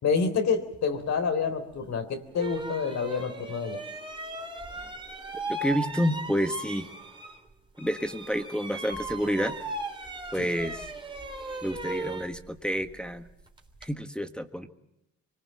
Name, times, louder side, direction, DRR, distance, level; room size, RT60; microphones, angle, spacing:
voice 1, 0.0-3.8, left 5 dB, 65° left, 6 dB, 3.7 m, -28 dB
sound 1, 1.7-1.8 2.3-7.5 7.8-13.9, right 2 dB, 15° right, 3.4 m, -38 dB
voice 2, 5.5-6.9 7.8-9.5 10.3-10.8 11.6-13.2 13.8-14.7, equal, 5° left, 6 dB, 1.5 m, -29 dB
24.5 x 19.5 x 7.7 m, 0.86 s
cardioid pair, 90°, 30 cm